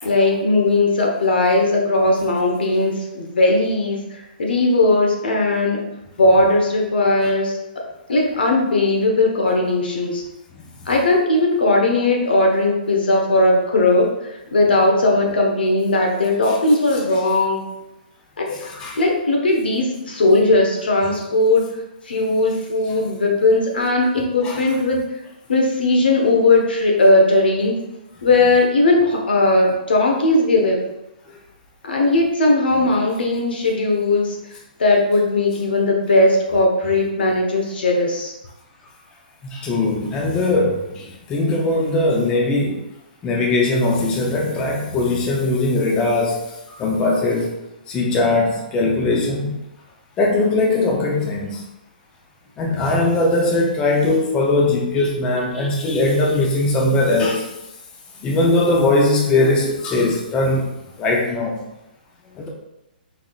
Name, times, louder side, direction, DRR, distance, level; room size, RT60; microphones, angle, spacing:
voice 1, 0.0-5.8 6.2-7.6 8.1-10.2 10.9-17.6 18.4-18.6 19.0-21.7 22.0-25.0 25.5-27.8 28.2-30.8 31.8-34.4 34.8-38.3 55.0-55.1 55.5-56.5, left 2 dB, 90° left, 0 dB, 1.2 m, -18 dB
voice 2, 18.6-19.0 24.4-24.6 39.4-42.8 43.2-47.5 47.9-49.6 50.2-51.6 52.6-57.5 58.2-60.7 61.0-61.6 62.4-62.5, left 2 dB, 15° left, -1 dB, 0.6 m, -20 dB
5.6 x 3.6 x 2.4 m, 0.92 s
hypercardioid pair, 160°, 5 cm